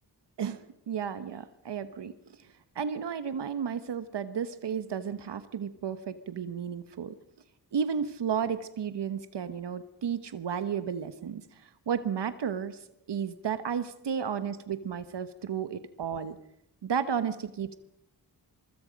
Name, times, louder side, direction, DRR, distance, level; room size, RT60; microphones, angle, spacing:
voice 1, 0.4-2.1 2.7-7.1 7.7-12.8 13.1-16.4 16.8-17.7, right 7 dB, 85° right, 12 dB, 1.2 m, -33 dB
24.5 x 24.0 x 5.2 m, 0.82 s
wide cardioid pair, 85°, 41 cm